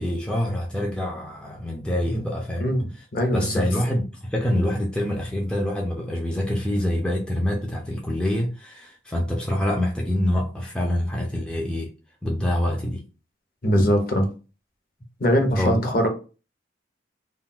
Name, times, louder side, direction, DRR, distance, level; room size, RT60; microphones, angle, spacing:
voice 1, 0.0-3.1 3.3-11.9 12.2-13.0 15.6-15.9, left 1 dB, 5° left, 0.3 m, -26 dB
voice 2, 3.1-3.6 13.6-14.3 15.2-16.1, equal, 50° left, 0.7 m, -21 dB
2.3 x 2.1 x 3.6 m
head